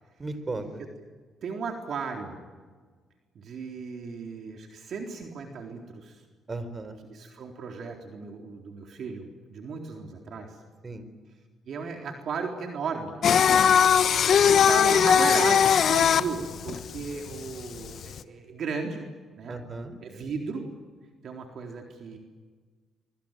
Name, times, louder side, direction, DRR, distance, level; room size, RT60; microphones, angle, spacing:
voice 1, 0.2-0.7 6.5-7.0 10.8-11.1 19.5-19.9, right 3 dB, 30° right, 12 dB, 4.3 m, -35 dB
voice 2, 1.4-2.4 3.3-6.2 7.1-10.6 11.7-13.2 14.5-19.1 19.4-19.6 20.0-20.7 21.2-22.2, right 5 dB, 60° right, 2 dB, 3.9 m, -35 dB
Singing, 13.2-18.2, left 8 dB, 60° left, 1.3 m, -20 dB
25.5 x 24.5 x 9.1 m, 1.5 s
cardioid pair, 90°, 0 cm